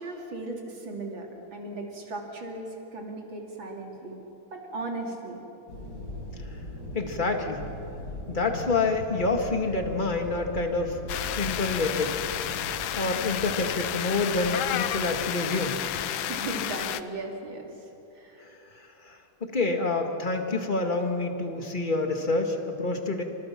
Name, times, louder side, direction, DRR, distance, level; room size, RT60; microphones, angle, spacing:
voice 1, 0.0-4.2 4.5-5.5 16.3-17.8 18.1-18.5, right 2 dB, 65° right, 0 dB, 3.7 m, -37 dB
sound 1, 5.7-15.2, left 1 dB, 50° left, 5.8 m, -40 dB
voice 2, 6.9-7.6 8.3-11.0 11.3-12.2 12.9-15.8 18.4-23.2, left 3 dB, 25° left, 4 dB, 2.0 m, -28 dB
sound 2, 11.1-17.0, left 11 dB, 75° left, 1.5 m, -31 dB
29.0 x 25.5 x 6.1 m, 2.9 s
omnidirectional pair, 2.3 m